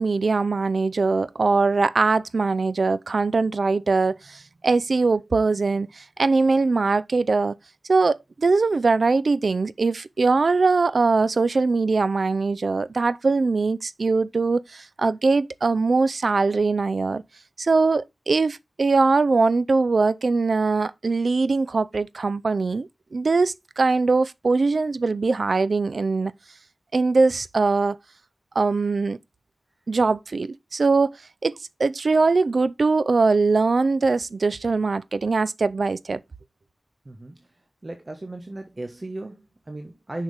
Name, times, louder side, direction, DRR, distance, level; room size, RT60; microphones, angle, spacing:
voice 1, 0.0-7.6 7.9-17.2 17.6-26.3 26.9-28.0 28.6-29.2 29.9-31.2 31.4-36.2, right 3 dB, 70° right, 0.5 m, -22 dB
voice 2, 37.0-37.5 37.8-40.2, right 2 dB, 40° right, 1.3 m, -36 dB
6.6 x 6.4 x 3.4 m
cardioid pair, 50°, 0 cm